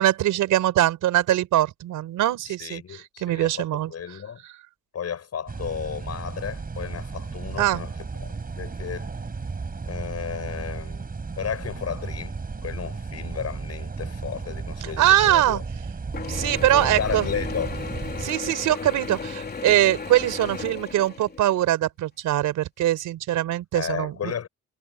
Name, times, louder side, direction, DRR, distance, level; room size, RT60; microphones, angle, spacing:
voice 1, 0.0-3.9 7.6-7.8 14.8-15.6 16.3-17.3 18.2-24.5, right 13 dB, 85° right, 4.6 m, -22 dB
voice 2, 2.5-4.4 4.9-7.9 8.2-9.1 9.9-15.6 16.4-17.8 23.7-24.5, left 8 dB, 55° left, 8.0 m, -34 dB
sound 1, 5.5-18.3, right 4 dB, 30° right, 4.6 m, -34 dB
Mechanisms / Drill, 16.1-21.6, left 5 dB, 30° left, 3.8 m, -35 dB
cardioid pair, 90°, 30 cm